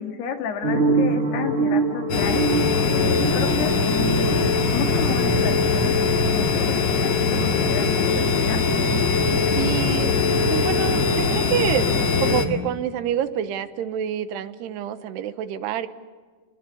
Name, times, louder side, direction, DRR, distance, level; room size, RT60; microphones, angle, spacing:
voice 1, 0.0-2.4 2.9-4.3 4.7-8.6, left 6 dB, 75° left, 6 dB, 4.1 m, -31 dB
sound 1, 0.6-5.4, right 4 dB, 35° right, 1.0 m, -25 dB
sound 2, 2.1-12.4, left 4 dB, 45° left, 3.0 m, -21 dB
voice 2, 9.6-15.9, right 10 dB, 80° right, 12 dB, 3.1 m, -27 dB
29.0 x 20.5 x 8.4 m, 1.5 s
omnidirectional pair, 4.8 m